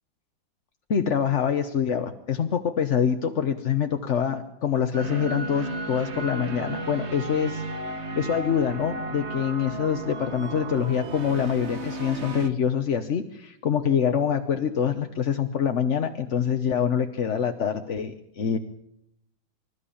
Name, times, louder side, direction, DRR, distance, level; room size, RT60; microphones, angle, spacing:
voice 1, 0.9-7.6 8.2-18.6, left 8 dB, 50° left, 7 dB, 1.0 m, -25 dB
sound 1, 4.9-12.5, right 2 dB, 40° right, 1.4 m, -33 dB
25.5 x 13.0 x 8.6 m, 0.78 s
omnidirectional pair, 2.2 m